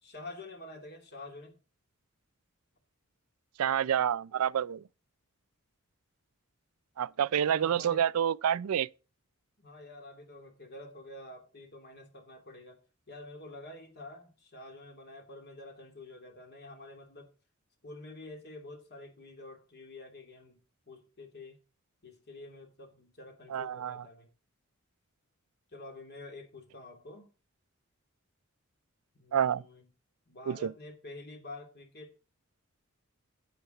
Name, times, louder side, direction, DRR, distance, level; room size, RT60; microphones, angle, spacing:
voice 1, 0.0-1.6 7.4-8.0 9.6-12.8 13.1-17.3 17.8-20.6 20.9-21.6 22.0-24.3 25.7-27.3 29.1-29.9 30.3-32.1, left 2 dB, 50° left, 2.8 m, -48 dB
voice 2, 3.6-4.8 7.0-8.9 23.5-24.0 29.3-29.6 30.5-30.7, right 9 dB, 90° right, 0.4 m, -28 dB
10.5 x 8.7 x 3.9 m
head